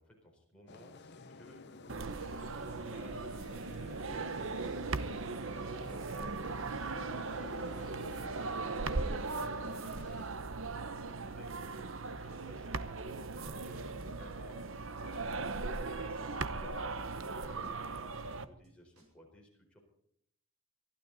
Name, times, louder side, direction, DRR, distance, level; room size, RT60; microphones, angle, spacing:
voice 1, 0.0-9.4 9.7-10.3 10.5-11.6 12.1-17.1 17.5-19.8, equal, 5° left, -2 dB, 4.4 m, -58 dB
sound 1, 0.7-10.3, left 3 dB, 50° left, 0.9 m, -53 dB
sound 2, 1.9-18.5, right 3 dB, 60° right, 0.9 m, -38 dB
sound 3, 7.0-7.3 7.6-8.0 8.3-8.4 8.6-9.3 9.6-10.0 10.3-10.7 11.0-12.7 13.0-13.3 13.6-14.7 15.0-15.3 15.6-16.0 16.3-16.4 16.6-17.3 17.6-18.0 18.3-18.7 19.0-19.1, right 1 dB, 80° right, 5.5 m, -63 dB
23.0 x 12.5 x 4.1 m, 0.72 s
head